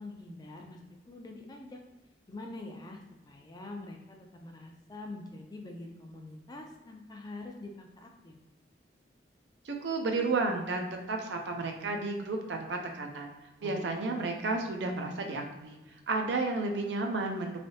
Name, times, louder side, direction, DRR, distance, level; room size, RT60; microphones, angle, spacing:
voice 1, 0.0-1.8 2.3-3.0 3.3-8.3 13.6-14.0, left 2 dB, 20° left, 2 dB, 0.4 m, -45 dB
voice 2, 9.6-13.3 13.6-15.8 16.1-17.6, right 3 dB, 75° right, 3 dB, 0.5 m, -32 dB
3.3 x 2.6 x 2.7 m, 1.1 s
head